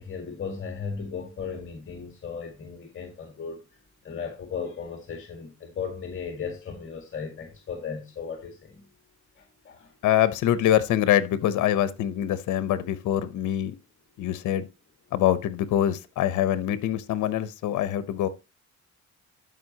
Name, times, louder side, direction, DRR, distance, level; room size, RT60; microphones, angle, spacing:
voice 1, 0.0-3.6 4.0-8.8 9.4-9.9, left 6 dB, 40° left, 1.7 m, -36 dB
voice 2, 10.0-13.7 14.2-14.7 15.1-18.3, left 11 dB, 80° left, 0.9 m, -24 dB
12.5 x 5.1 x 2.9 m
cardioid pair, 90°, 30 cm